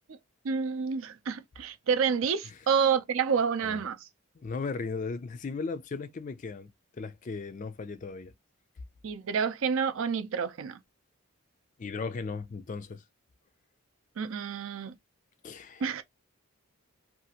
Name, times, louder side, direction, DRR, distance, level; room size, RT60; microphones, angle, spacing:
voice 1, 0.4-4.1 9.0-10.8 14.2-14.9 15.8-16.0, right 6 dB, 65° right, 0.4 m, -29 dB
voice 2, 4.4-8.3 11.8-13.0 15.4-15.8, left 4 dB, 35° left, 0.3 m, -36 dB
2.7 x 2.4 x 2.7 m
head